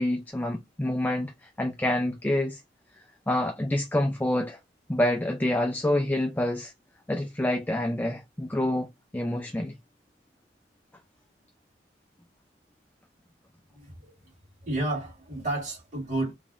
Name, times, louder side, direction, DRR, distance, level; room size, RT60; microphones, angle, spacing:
voice 1, 0.0-2.6 3.3-4.6 4.9-6.7 7.1-8.9 9.1-9.7, left 1 dB, 10° left, 0.5 m, -27 dB
voice 2, 13.7-14.1 14.6-16.3, right 2 dB, 40° right, 2.3 m, -31 dB
3.7 x 3.5 x 2.5 m
head